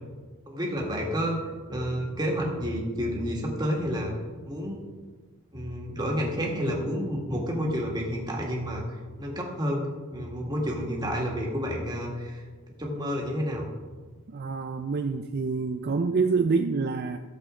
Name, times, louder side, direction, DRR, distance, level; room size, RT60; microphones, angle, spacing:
voice 1, 0.5-1.4 1.7-4.1 4.5-4.8 5.5-8.9 9.2-12.4 12.8-13.7, equal, 20° right, -2 dB, 2.0 m, -30 dB
voice 2, 14.3-17.2, right 4 dB, 50° right, 6 dB, 0.4 m, -26 dB
15.0 x 7.3 x 3.8 m, 1.4 s
head